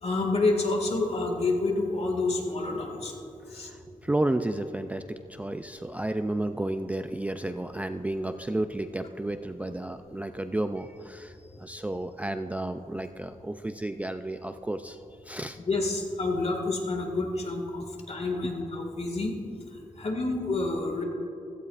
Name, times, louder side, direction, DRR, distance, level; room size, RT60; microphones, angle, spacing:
voice 1, 0.0-3.1 3.5-3.7 15.7-19.4 19.7-21.0, left 2 dB, 50° left, 2 dB, 1.9 m, -28 dB
voice 2, 3.6-15.0 15.2-15.6, right 1 dB, 10° right, 7 dB, 0.3 m, -32 dB
16.5 x 14.5 x 2.5 m, 2.9 s
wide cardioid pair, 120°, 14 cm